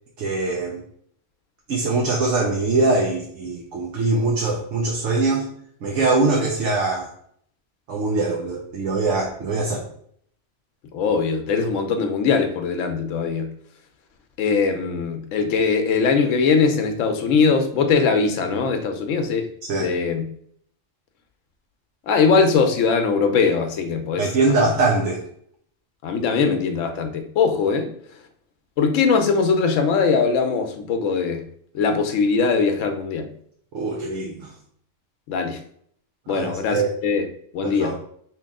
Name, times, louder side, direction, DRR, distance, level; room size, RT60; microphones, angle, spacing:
voice 1, 0.2-0.8 1.7-5.4 5.8-7.1 7.9-9.8 19.7-19.9 24.2-25.2 33.7-34.5 36.3-36.9 37.6-38.0, right 3 dB, 70° right, -1 dB, 1.0 m, -22 dB
voice 2, 10.9-13.5 14.4-19.5 19.8-20.2 22.1-24.3 24.6-24.7 26.0-27.9 28.8-31.4 31.7-33.3 35.3-35.6 36.3-37.3 37.5-37.9, left 5 dB, 80° left, 7 dB, 0.9 m, -21 dB
2.9 x 2.9 x 3.5 m, 0.64 s
omnidirectional pair, 1.3 m